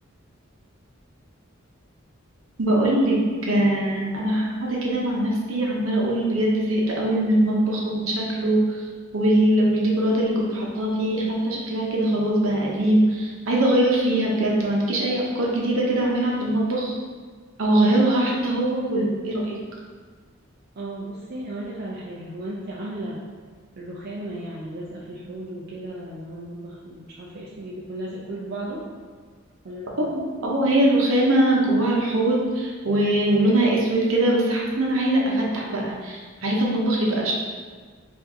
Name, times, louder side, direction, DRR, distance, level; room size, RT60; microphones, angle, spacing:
voice 1, 2.6-3.2 3.5-8.8 9.1-16.9 17.6-19.6 30.0-30.1 30.4-37.3, right 1 dB, 75° right, -3 dB, 0.8 m, -22 dB
voice 2, 20.8-23.2 23.8-28.9 29.6-30.1, right 1 dB, 50° right, -5 dB, 0.4 m, -35 dB
4.4 x 2.5 x 2.7 m, 1.6 s
head